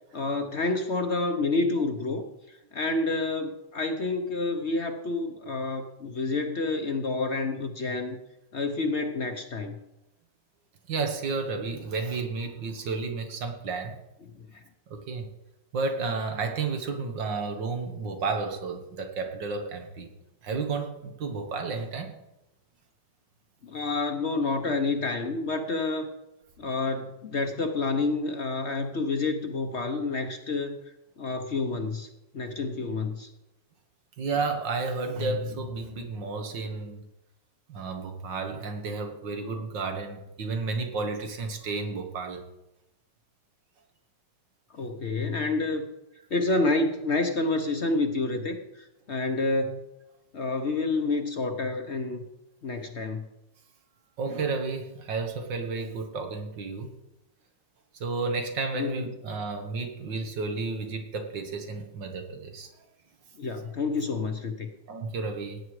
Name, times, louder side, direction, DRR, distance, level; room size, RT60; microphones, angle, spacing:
voice 1, 0.1-8.2 8.5-9.8 14.4-14.6 23.6-26.1 26.6-30.8 31.2-32.1 32.3-33.3 44.7-45.9 46.3-49.9 50.3-52.2 52.6-53.2 58.7-59.2 63.4-64.7, left 3 dB, 45° left, 6 dB, 1.0 m, -29 dB
voice 2, 10.9-14.0 14.9-15.3 15.7-20.1 20.4-22.1 34.2-37.0 37.7-42.4 54.2-57.0 57.9-62.7 64.9-65.6, right 4 dB, 85° right, 4 dB, 2.2 m, -32 dB
17.0 x 9.0 x 4.8 m, 0.93 s
omnidirectional pair, 1.9 m